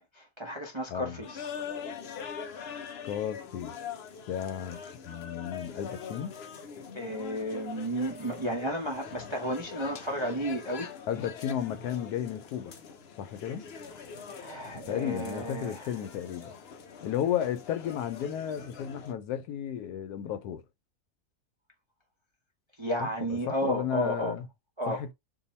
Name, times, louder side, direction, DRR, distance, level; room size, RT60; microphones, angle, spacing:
voice 1, 0.0-1.5 6.9-10.9 14.4-15.9 22.8-24.3 24.8-25.0, equal, 35° right, 0.4 m, -33 dB
voice 2, 0.9-1.2 3.0-3.7 4.3-6.4 11.1-12.7 13.2-13.7 14.9-16.5 17.0-20.6 23.0-24.5 24.9-25.1, left 9 dB, 80° left, 1.1 m, -33 dB
sound 1, 1.2-19.1, left 6 dB, 60° left, 0.6 m, -43 dB
2.8 x 2.6 x 4.1 m
omnidirectional pair, 1.7 m